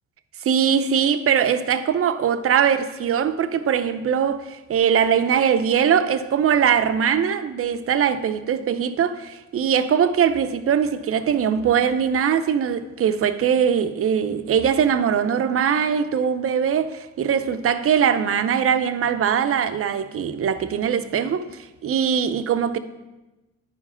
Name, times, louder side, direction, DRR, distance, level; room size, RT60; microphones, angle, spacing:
voice 1, 0.4-22.8, right 8 dB, 50° right, 0.7 m, -21 dB
10.5 x 4.8 x 5.7 m
cardioid pair, 90°, 30 cm